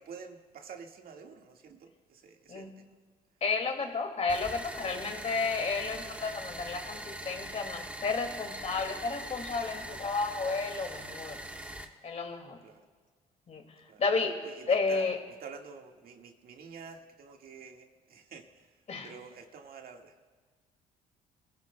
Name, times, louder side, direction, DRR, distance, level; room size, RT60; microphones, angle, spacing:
voice 1, 0.0-2.9 10.0-10.1 12.6-12.8 13.9-14.0 14.4-15.1 15.4-18.7 19.0-20.1, right 5 dB, 60° right, 3 dB, 1.8 m, -48 dB
voice 2, 3.4-11.4 12.0-12.6 13.5-13.6 14.0-14.4 14.7-15.2 18.9-19.1, left 4 dB, 40° left, 3 dB, 2.3 m, -32 dB
sound 1, 4.3-11.8, right 1 dB, 10° right, 1.4 m, -42 dB
30.0 x 16.0 x 2.3 m, 1.5 s
supercardioid pair, 80°, 17 cm